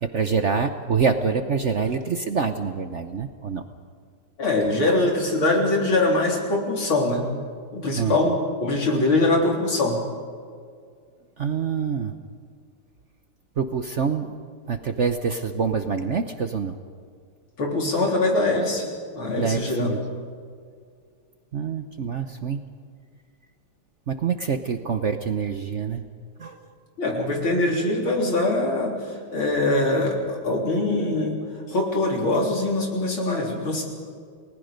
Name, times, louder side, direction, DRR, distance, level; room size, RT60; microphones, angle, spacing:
voice 1, 0.0-3.6 8.0-8.2 11.4-12.1 13.6-14.4 14.7-16.8 19.4-20.0 21.5-22.6 24.1-26.0 26.4-26.6, right 6 dB, 60° right, 7 dB, 0.7 m, -26 dB
voice 2, 4.4-7.3 7.7-10.0 17.6-18.9 19.1-20.0 27.0-31.4 31.7-33.8, left 2 dB, 65° left, -1 dB, 4.5 m, -23 dB
30.0 x 19.5 x 5.3 m, 2.1 s
omnidirectional pair, 2.4 m